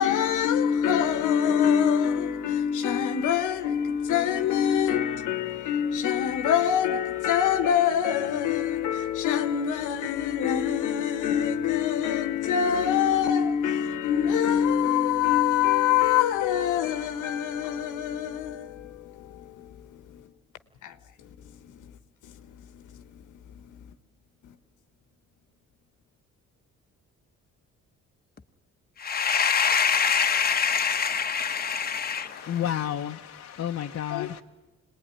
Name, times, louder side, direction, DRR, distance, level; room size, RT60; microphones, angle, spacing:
voice 1, 0.0-19.8 20.1-20.2 20.8-21.0 22.2-22.3 22.9-23.0 34.1-34.4, left 9 dB, 80° left, 1.3 m, -25 dB
voice 2, 29.0-32.5, left 6 dB, 30° left, 1.1 m, -25 dB
voice 3, 32.2-34.4, left 10 dB, 50° left, 0.9 m, -31 dB
26.5 x 19.5 x 9.9 m
cardioid pair, 90°, 30 cm